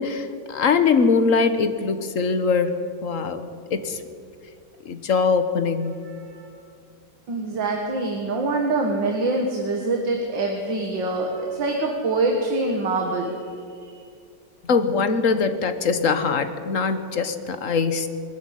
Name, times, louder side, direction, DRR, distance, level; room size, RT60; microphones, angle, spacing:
voice 1, 0.0-4.0 4.8-6.1 14.6-18.1, left 5 dB, 50° left, 10 dB, 1.4 m, -22 dB
voice 2, 6.1-6.5 7.3-13.4, right 2 dB, 75° right, 1 dB, 2.5 m, -25 dB
21.0 x 14.0 x 10.0 m, 2.4 s
omnidirectional pair, 2.0 m